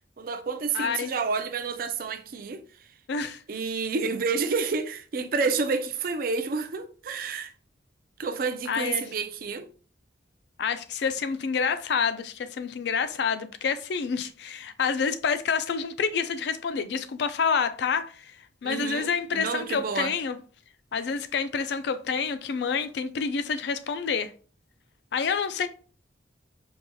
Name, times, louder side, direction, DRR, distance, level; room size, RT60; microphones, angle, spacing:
voice 1, 0.2-2.9 3.5-7.5 8.2-9.7 18.6-20.1, right 4 dB, 50° right, 0.4 m, -29 dB
voice 2, 0.7-1.1 3.1-3.4 8.7-9.0 10.6-18.2 18.6-20.4 20.9-24.3 25.1-25.7, left 6 dB, 65° left, 0.3 m, -28 dB
4.6 x 2.7 x 2.2 m
head